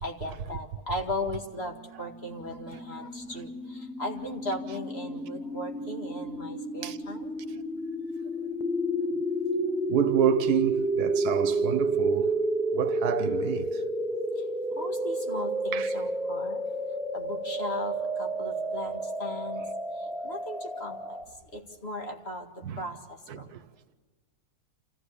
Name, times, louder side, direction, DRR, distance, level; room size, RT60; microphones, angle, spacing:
voice 1, 0.0-7.3 14.4-14.5 14.7-16.6 17.1-19.6 20.0-21.2 21.5-22.5 22.8-23.0 23.4-23.6, left 1 dB, 45° left, 2.2 m, -37 dB
sound 1, 2.1-21.2, right 1 dB, 5° right, 0.4 m, -31 dB
voice 2, 9.9-12.4 12.7-13.8 15.7-16.0 22.6-22.8 23.3-23.6, right 9 dB, 90° right, 1.5 m, -29 dB
28.0 x 14.0 x 8.5 m
omnidirectional pair, 1.6 m